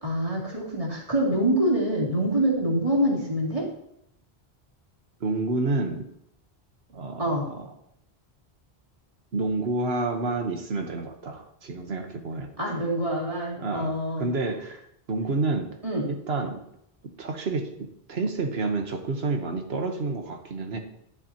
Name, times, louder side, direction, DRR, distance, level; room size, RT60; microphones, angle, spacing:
voice 1, 0.0-3.7 7.2-7.5 12.6-14.3 15.8-16.1, right 1 dB, 30° right, -4 dB, 2.7 m, -25 dB
voice 2, 5.2-6.1 6.9-7.7 9.3-12.5 13.6-15.7 16.1-16.6 17.2-17.7 18.1-20.8, right 3 dB, 75° right, 5 dB, 1.4 m, -29 dB
10.5 x 10.0 x 2.9 m, 0.75 s
omnidirectional pair, 1.1 m